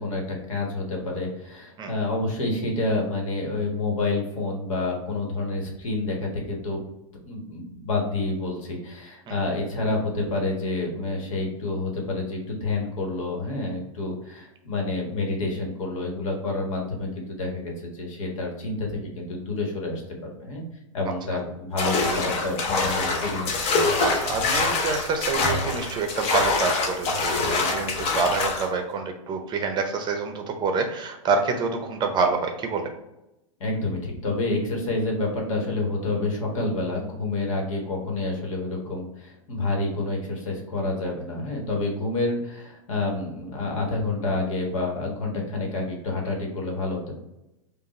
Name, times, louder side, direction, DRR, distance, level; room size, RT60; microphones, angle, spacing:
voice 1, 0.0-6.8 7.2-20.6 20.9-23.5 33.6-47.1, left 2 dB, 70° left, 0 dB, 1.5 m, -28 dB
sound 1, 21.8-28.7, left 3 dB, 35° left, 0.8 m, -25 dB
voice 2, 24.0-32.9, right 4 dB, 25° right, 5 dB, 0.7 m, -27 dB
5.2 x 2.5 x 3.1 m, 0.91 s
hypercardioid pair, 120°, 17 cm